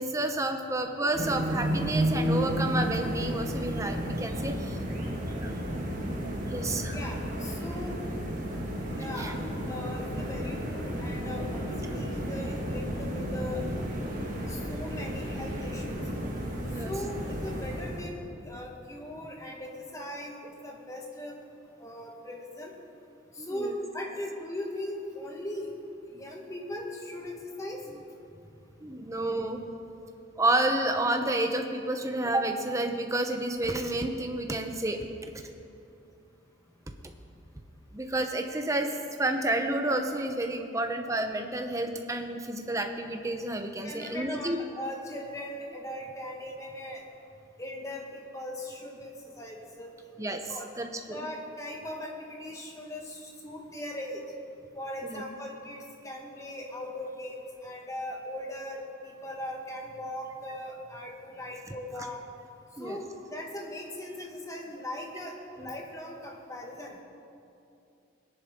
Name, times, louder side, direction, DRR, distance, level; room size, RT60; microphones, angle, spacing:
voice 1, 0.0-4.8 5.3-5.8 6.5-7.0 9.2-9.3 16.7-16.9 23.4-23.7 27.9-28.0 28.8-29.6 30.4-35.1 37.9-38.9 39.2-44.6 50.2-50.4 50.8-51.3 55.0-55.2 62.8-63.0 65.6-65.7, right 1 dB, 15° right, 4 dB, 0.7 m, -30 dB
sound 1, 1.1-18.1, equal, 40° right, 1.8 m, -32 dB
voice 2, 6.9-8.0 9.0-13.6 14.5-16.1 16.7-21.4 21.8-22.7 23.3-25.7 26.0-27.8 43.8-47.0 47.6-49.9 50.3-50.7 51.1-54.2 54.7-62.2 62.8-67.0, left 1 dB, 15° left, 0 dB, 1.4 m, -39 dB
19.0 x 10.5 x 3.7 m, 2.7 s
head